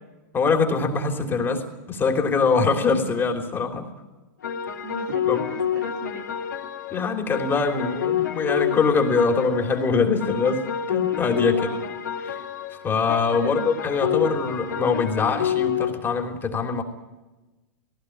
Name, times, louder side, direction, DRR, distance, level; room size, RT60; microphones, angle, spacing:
voice 1, 0.3-3.9 5.3-5.4 6.9-11.7 12.2-12.4 12.8-16.8, left 4 dB, 20° left, 4 dB, 3.2 m, -23 dB
sound 1, 4.4-16.2, left 9 dB, 85° left, 2.8 m, -28 dB
voice 2, 4.8-6.3 11.4-11.9 13.4-13.7, right 5 dB, 90° right, 3 dB, 2.9 m, -37 dB
18.0 x 16.5 x 9.8 m, 1.1 s
hypercardioid pair, 115°, 10 cm